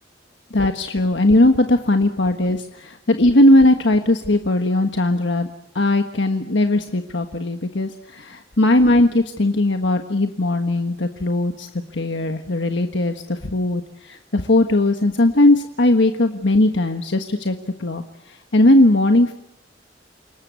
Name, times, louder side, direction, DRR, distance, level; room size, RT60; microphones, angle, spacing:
voice 1, 0.5-5.5 5.7-19.3, left 1 dB, 70° left, 6 dB, 1.4 m, -18 dB
29.5 x 19.0 x 8.3 m, 0.80 s
head